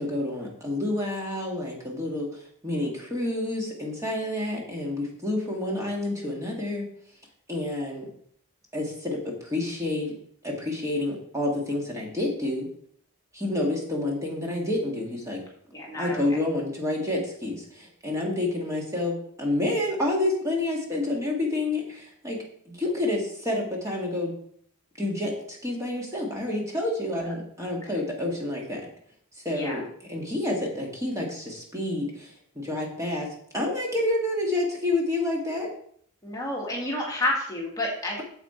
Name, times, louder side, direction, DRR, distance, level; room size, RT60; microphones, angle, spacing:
voice 1, 0.0-6.9 7.5-8.1 8.7-10.1 10.4-12.7 13.3-15.4 15.9-24.3 25.0-28.8 29.4-29.8 30.1-33.3 33.5-35.7, left 1 dB, 15° right, -2 dB, 2.1 m, -29 dB
voice 2, 15.7-16.2 27.8-27.9 29.5-29.8 36.2-38.2, left 1 dB, 15° left, -3 dB, 1.9 m, -30 dB
8.9 x 7.4 x 4.4 m, 0.63 s
head